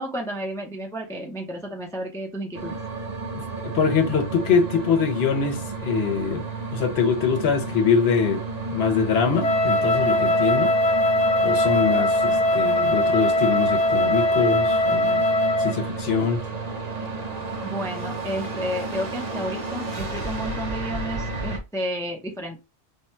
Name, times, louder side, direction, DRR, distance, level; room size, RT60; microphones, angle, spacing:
voice 1, 0.0-2.8 17.6-22.6, equal, 5° left, 0.6 m, -31 dB
sound 1, 2.5-21.6, right 3 dB, 40° right, 0.9 m, -32 dB
voice 2, 3.3-6.4 6.7-8.4 8.7-10.8 11.4-15.2 15.6-16.4, left 5 dB, 70° left, 1.0 m, -23 dB
Wind instrument woodwind instrument, 9.4-15.8, left 1 dB, 40° left, 0.7 m, -21 dB
3.5 x 2.2 x 4.3 m
omnidirectional pair, 1.1 m